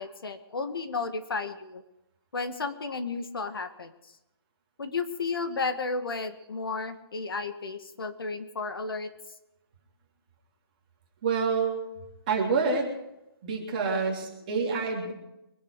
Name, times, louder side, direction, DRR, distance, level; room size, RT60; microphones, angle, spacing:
voice 1, 0.0-1.8 2.3-3.9 4.8-9.1, left 4 dB, 65° left, 8 dB, 1.9 m, -33 dB
voice 2, 11.2-11.8 12.3-12.9 13.4-15.1, right 4 dB, 20° right, -2 dB, 3.2 m, -27 dB
24.5 x 10.5 x 4.8 m, 0.90 s
hypercardioid pair, 180°, 13 cm